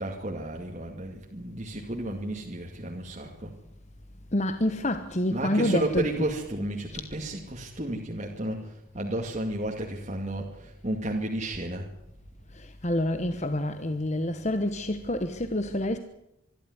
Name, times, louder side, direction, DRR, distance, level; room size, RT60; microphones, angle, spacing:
voice 1, 0.0-3.5 5.3-11.9, right 1 dB, 35° right, 2.2 m, -32 dB
voice 2, 4.3-6.2 6.9-7.0 12.6-16.0, left 1 dB, 35° left, 1.1 m, -27 dB
25.0 x 12.5 x 9.7 m
head